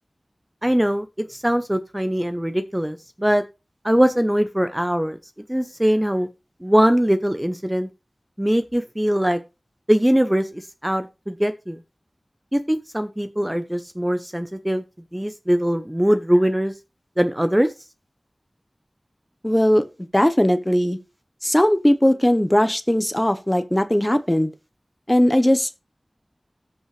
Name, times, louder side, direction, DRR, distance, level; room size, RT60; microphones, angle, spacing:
voice 1, 0.6-3.4 3.8-5.2 5.5-6.3 6.6-7.9 8.4-9.4 9.9-11.8 12.5-14.8 15.1-16.7 17.2-17.7, equal, 10° right, 0.8 m, -21 dB
voice 2, 19.4-19.8 20.1-21.0 21.4-24.5 25.1-25.7, equal, 15° left, 1.0 m, -18 dB
14.0 x 5.5 x 3.3 m
wide cardioid pair, 50°, 0 cm